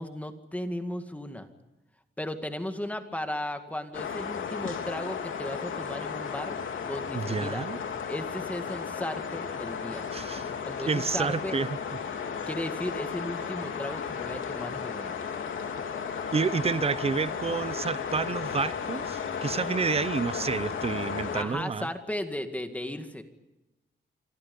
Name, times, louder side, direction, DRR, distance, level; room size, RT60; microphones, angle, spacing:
voice 1, 0.0-1.5 2.2-6.6 6.8-7.6 8.1-10.1 10.6-11.6 12.5-15.1 21.3-23.2, left 1 dB, 5° left, 2.0 m, -35 dB
sound 1, 3.9-21.4, left 6 dB, 90° left, 3.2 m, -34 dB
voice 2, 7.1-7.8 10.1-10.5 10.9-11.7 16.3-21.9, right 5 dB, 30° right, 0.9 m, -29 dB
27.5 x 25.5 x 5.4 m
wide cardioid pair, 175°, 20 cm